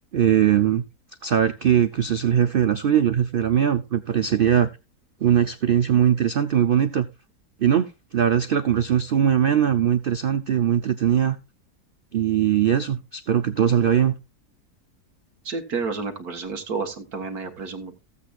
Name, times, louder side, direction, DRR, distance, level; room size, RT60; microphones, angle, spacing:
voice 1, 0.1-0.8 1.2-4.7 5.2-7.1 7.6-11.4 12.1-14.1, right 9 dB, 90° right, 10 dB, 0.4 m, -20 dB
voice 2, 15.4-18.0, right 4 dB, 70° right, 6 dB, 1.9 m, -30 dB
15.0 x 8.4 x 2.4 m, 0.25 s
omnidirectional pair, 1.7 m